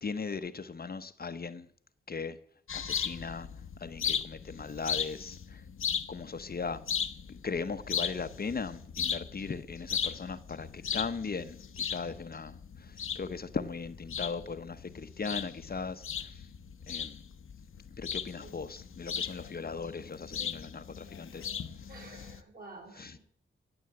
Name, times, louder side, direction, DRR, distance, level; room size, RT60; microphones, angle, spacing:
voice 1, 0.0-1.7 2.1-2.4 2.7-3.5 3.8-5.6 6.1-6.8 7.3-16.5 16.9-17.2 18.0-21.5 22.9-23.2, left 5 dB, 45° left, 0.9 m, -38 dB
sound 1, 2.7-22.4, left 7 dB, 75° left, 1.0 m, -37 dB
voice 2, 21.9-23.2, right 2 dB, 45° right, 6.3 m, -50 dB
18.0 x 8.1 x 7.8 m
cardioid pair, 80°, 21 cm